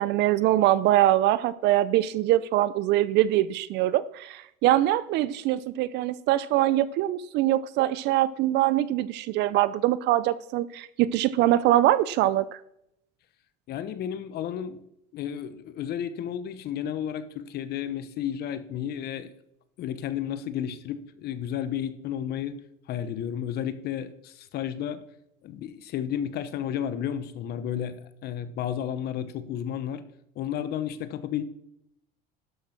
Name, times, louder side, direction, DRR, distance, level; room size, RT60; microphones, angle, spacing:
voice 1, 0.0-12.5, right 14 dB, 60° right, 17 dB, 0.5 m, -23 dB
voice 2, 13.7-14.8 15.1-19.3 19.8-22.6 22.9-25.0 25.4-30.0 30.4-31.4, left 9 dB, 50° left, 13 dB, 0.9 m, -32 dB
12.0 x 6.6 x 5.8 m, 0.78 s
supercardioid pair, 115°, 20 cm